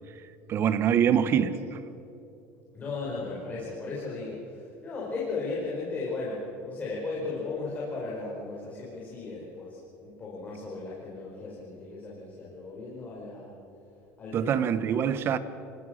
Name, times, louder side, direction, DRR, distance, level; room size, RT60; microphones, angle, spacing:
voice 1, 0.5-1.5 14.3-15.4, right 8 dB, 40° right, 1.1 m, -24 dB
voice 2, 2.7-13.5 14.2-15.0, left 3 dB, 25° left, 5.2 m, -36 dB
27.0 x 18.5 x 6.6 m
cardioid pair, 135°, 6 cm